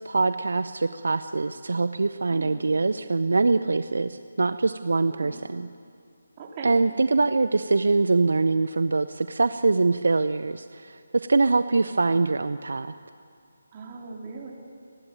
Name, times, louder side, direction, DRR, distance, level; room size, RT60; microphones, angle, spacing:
voice 1, 0.0-5.7 6.6-12.9, right 3 dB, 65° right, 11 dB, 0.7 m, -23 dB
voice 2, 2.3-2.6 5.1-5.4 6.4-6.7 13.7-14.5, right 5 dB, 30° right, -1 dB, 3.8 m, -40 dB
28.5 x 12.0 x 9.1 m, 2.4 s
figure-of-eight pair, 155°, 0 cm